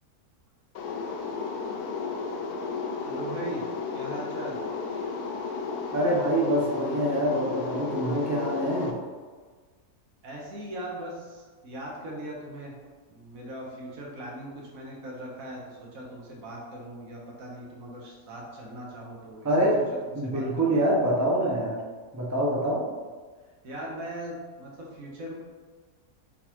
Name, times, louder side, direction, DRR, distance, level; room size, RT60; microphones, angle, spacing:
sound 1, 0.7-8.9, left 4 dB, 80° left, 1.1 m, -33 dB
voice 1, 3.0-3.7 3.9-4.6 10.2-12.7 13.1-19.7 20.0-20.7 23.6-25.3, right 1 dB, 65° right, -2 dB, 1.4 m, -39 dB
voice 2, 5.9-8.9 19.4-19.8 20.1-21.8 22.1-22.9, right 1 dB, 20° right, -3 dB, 0.4 m, -25 dB
4.1 x 4.0 x 2.9 m, 1.5 s
omnidirectional pair, 1.6 m